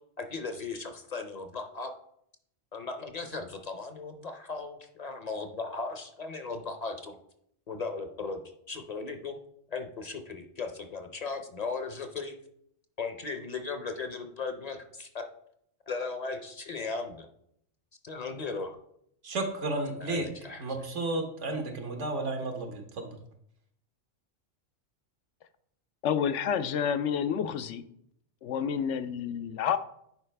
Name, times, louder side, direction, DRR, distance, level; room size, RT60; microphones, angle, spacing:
voice 1, 0.2-1.9 2.7-7.2 7.7-8.4 8.7-9.4 9.7-12.4 13.0-15.2 15.9-17.3 18.0-18.8 20.0-20.8, left 4 dB, 40° left, 7 dB, 0.7 m, -37 dB
voice 2, 19.2-20.2 20.6-23.1, right 2 dB, 85° right, 4 dB, 1.5 m, -32 dB
voice 3, 26.0-27.8 28.4-29.8, left 8 dB, 85° left, 11 dB, 0.9 m, -29 dB
10.5 x 4.8 x 3.3 m, 0.71 s
omnidirectional pair, 1.2 m